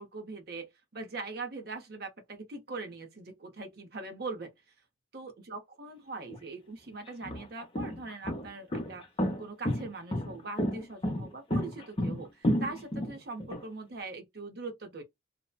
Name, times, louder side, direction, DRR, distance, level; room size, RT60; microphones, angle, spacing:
voice 1, 0.0-4.5 5.1-9.1 9.4-15.0, right 3 dB, 55° right, 0.8 m, -41 dB
sound 1, 6.3-6.4 7.1-13.6, equal, 30° left, 0.7 m, -31 dB
2.9 x 2.1 x 2.3 m
head